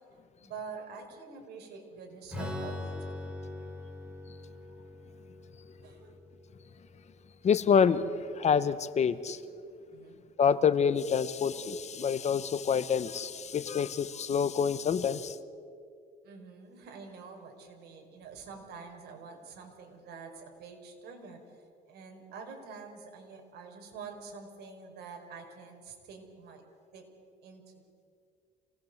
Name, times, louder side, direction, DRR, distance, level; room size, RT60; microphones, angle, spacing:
voice 1, 0.4-3.3 5.8-6.2 9.9-10.2 16.2-21.4 21.9-26.6 26.9-27.0 27.4-27.6, right 5 dB, 75° right, 4.9 m, -46 dB
Strum, 2.3-7.9, left 2 dB, 5° right, 5.9 m, -42 dB
voice 2, 7.4-8.1 8.4-9.4 10.4-15.3, left 7 dB, 40° left, 1.0 m, -27 dB
27.0 x 19.0 x 8.0 m
cardioid pair, 110°, 17 cm